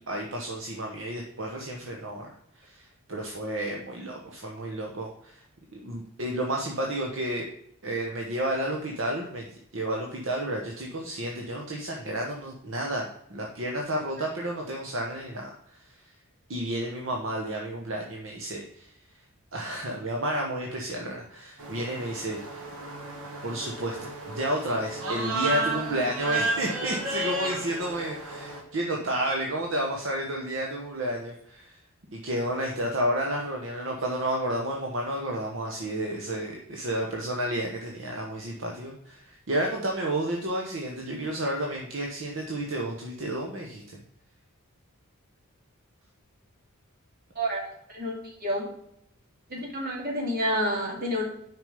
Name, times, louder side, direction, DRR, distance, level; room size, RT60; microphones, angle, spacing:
voice 1, 0.0-5.4 5.7-7.5 7.8-9.5 9.7-16.0 16.5-18.9 19.5-22.6 23.4-31.8 32.1-43.8, right 1 dB, 60° right, 0 dB, 1.1 m, -31 dB
sound 1, 21.6-28.6, right 2 dB, 85° right, 1.7 m, -32 dB
voice 2, 47.9-48.7 49.5-51.2, equal, 45° right, -1 dB, 2.4 m, -29 dB
6.3 x 5.2 x 5.1 m, 0.73 s
head